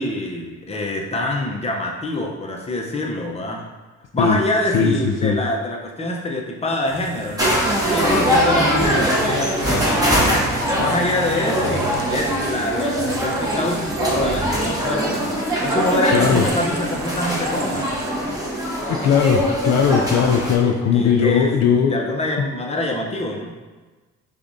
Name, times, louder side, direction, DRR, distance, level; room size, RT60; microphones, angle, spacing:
voice 1, 0.0-3.6 4.1-7.6 7.9-15.4 15.6-17.9 20.6-23.5, left 1 dB, 20° left, 0 dB, 0.7 m, -25 dB
sound 1, 6.9-18.1, right 6 dB, 65° right, 0.5 m, -35 dB
sound 2, 7.4-20.5, equal, 10° right, 1.2 m, -22 dB
voice 2, 16.1-16.4 18.9-21.9, left 7 dB, 60° left, 2 dB, 0.5 m, -18 dB
6.8 x 2.5 x 2.6 m, 1.3 s
cardioid pair, 90°, 30 cm